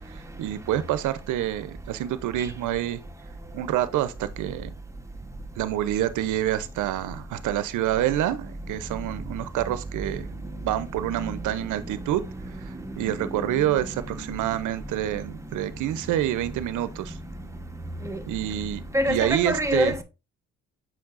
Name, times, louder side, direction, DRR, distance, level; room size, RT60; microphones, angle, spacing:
voice 1, 0.1-3.0 3.5-4.7 5.6-12.2 12.6-17.2 18.3-19.9, right 12 dB, 80° right, 0.7 m, -27 dB
voice 2, 10.8-14.6 18.0-18.2 18.9-20.0, equal, 10° right, 1.1 m, -30 dB
7.2 x 5.7 x 2.5 m
cardioid pair, 90°, 30 cm